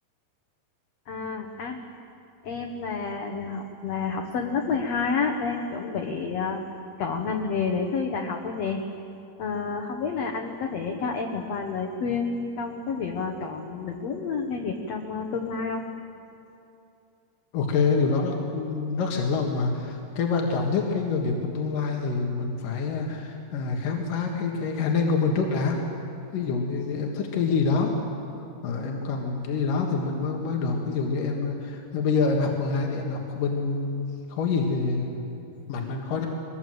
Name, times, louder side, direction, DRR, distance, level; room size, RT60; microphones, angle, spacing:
voice 1, 1.1-1.8 2.4-6.6 7.0-8.8 9.4-15.8, left 5 dB, 60° left, 2 dB, 2.1 m, -29 dB
voice 2, 17.5-25.8 26.3-28.0 28.6-35.2 35.7-36.3, left 4 dB, 75° left, 1 dB, 3.3 m, -26 dB
23.0 x 19.5 x 7.8 m, 2.7 s
omnidirectional pair, 3.9 m